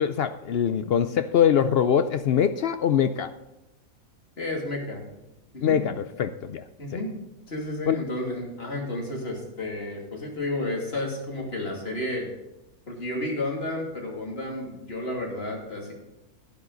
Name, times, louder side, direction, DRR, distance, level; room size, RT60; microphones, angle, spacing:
voice 1, 0.0-3.3 5.6-6.6 7.9-8.0, left 8 dB, 70° left, 11 dB, 0.6 m, -23 dB
voice 2, 4.4-5.0 5.5-5.8 6.8-7.1 7.5-12.3 12.9-15.9, left 1 dB, 40° left, -1 dB, 2.9 m, -31 dB
11.5 x 10.5 x 3.9 m, 0.96 s
omnidirectional pair, 1.5 m